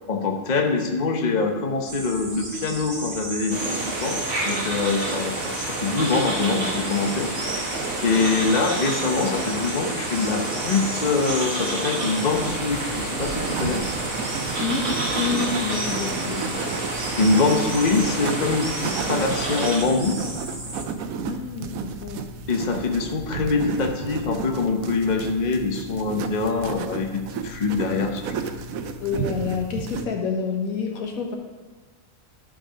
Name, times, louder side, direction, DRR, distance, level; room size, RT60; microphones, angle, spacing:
voice 1, 0.1-13.8 17.0-20.2 22.5-28.3, left 4 dB, 35° left, 4 dB, 1.0 m, -24 dB
sound 1, 1.9-20.8, right 2 dB, 25° right, 1.2 m, -35 dB
sound 2, 3.5-19.8, right 2 dB, 60° right, 2.2 m, -29 dB
sound 3, 12.3-30.0, right 6 dB, 80° right, 1.1 m, -33 dB
voice 2, 15.1-16.5 21.2-22.2 29.0-31.4, left 6 dB, 90° left, 2 dB, 1.7 m, -28 dB
12.0 x 5.1 x 5.1 m, 1.3 s
omnidirectional pair, 1.4 m